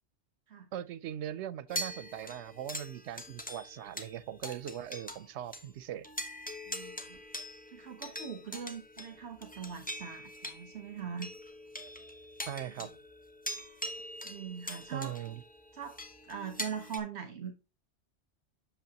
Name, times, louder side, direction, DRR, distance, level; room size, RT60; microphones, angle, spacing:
voice 1, 0.7-6.1 12.5-12.9 14.9-15.4, right 11 dB, 90° right, 0.9 m, -40 dB
sound 1, 1.7-5.3 5.5-5.7 6.0-17.0, equal, 10° left, 0.9 m, -43 dB
voice 2, 6.7-7.2 7.7-11.3 12.8-12.9 13.8-13.9 14.2-15.2 15.7-17.7, right 7 dB, 70° right, 1.3 m, -42 dB
8.2 x 6.8 x 2.8 m
omnidirectional pair, 1.2 m